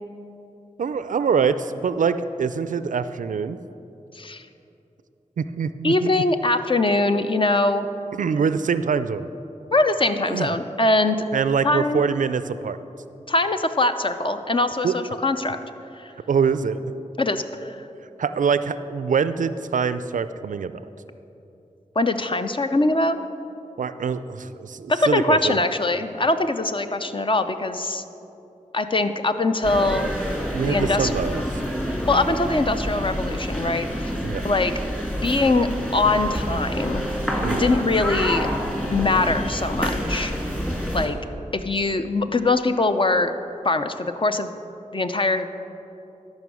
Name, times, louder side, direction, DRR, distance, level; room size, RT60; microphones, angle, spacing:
voice 1, 0.8-3.6 5.4-6.1 8.1-9.3 10.3-10.5 11.3-12.8 14.8-14.9 16.3-16.8 18.2-20.8 23.8-25.6 30.5-31.4 34.2-34.4 37.4-37.7, right 6 dB, 75° right, 13 dB, 0.4 m, -24 dB
voice 2, 4.1-4.5 5.8-7.9 9.7-11.2 11.6-12.1 13.3-15.6 15.9-16.1 17.2-17.9 22.0-23.3 24.9-28.0 28.7-30.1 30.6-31.1 32.1-34.1 34.4-34.7 35.2-37.0 37.6-38.5 38.9-40.3 40.9-41.2 41.5-43.3 43.6-44.5 44.9-45.5, left 2 dB, 40° left, 8 dB, 0.6 m, -22 dB
sound 1, 29.6-41.1, equal, 5° left, 2.0 m, -27 dB
13.0 x 5.3 x 6.3 m, 2.9 s
cardioid pair, 40°, 14 cm